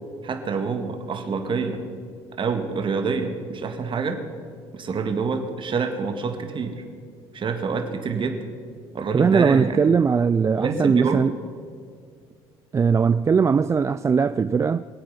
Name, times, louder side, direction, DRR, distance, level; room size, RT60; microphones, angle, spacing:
voice 1, 0.2-1.8 2.4-4.2 4.7-6.8 7.3-8.4 8.9-9.8 10.6-11.2, right 5 dB, 40° right, 1.8 m, -26 dB
voice 2, 9.1-11.3 12.7-14.8, right 6 dB, 20° right, 0.3 m, -19 dB
22.0 x 8.6 x 5.7 m
hypercardioid pair, 65°, 14 cm